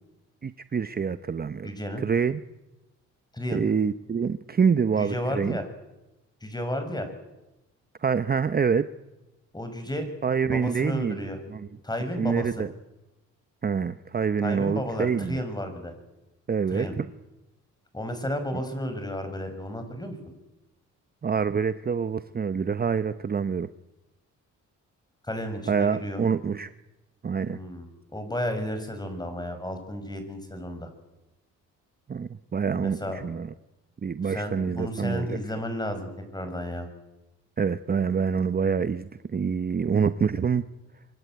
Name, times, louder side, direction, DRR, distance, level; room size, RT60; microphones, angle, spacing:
voice 1, 0.4-1.7 2.0-2.4 3.5-5.6 8.0-8.9 10.2-11.2 11.5-11.7 12.2-12.7 13.6-15.4 16.5-17.1 21.2-23.7 25.7-26.7 27.2-27.6 32.1-33.5 34.0-35.3 37.6-40.6, right 6 dB, 30° right, 12 dB, 0.9 m, -26 dB
voice 2, 1.6-2.0 3.3-3.6 5.0-5.7 6.4-7.1 9.5-10.1 10.4-11.4 11.8-12.6 14.4-15.9 16.7-16.9 17.9-20.2 25.3-26.2 27.4-30.9 32.8-33.2 34.2-36.9, equal, 15° left, 8 dB, 6.8 m, -32 dB
26.0 x 23.5 x 9.4 m, 0.99 s
cardioid pair, 90°, 30 cm